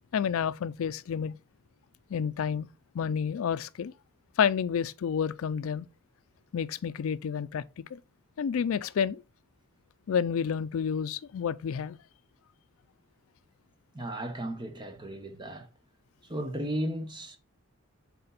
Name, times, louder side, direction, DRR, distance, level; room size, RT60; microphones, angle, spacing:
voice 1, 0.1-1.3 2.1-2.7 2.9-3.9 4.4-5.9 6.5-7.6 7.9-8.0 8.4-9.2 10.1-12.0, left 7 dB, 70° left, 0.4 m, -29 dB
voice 2, 13.9-15.7 16.2-17.4, right 1 dB, 20° right, 0.9 m, -35 dB
6.8 x 4.3 x 3.9 m
head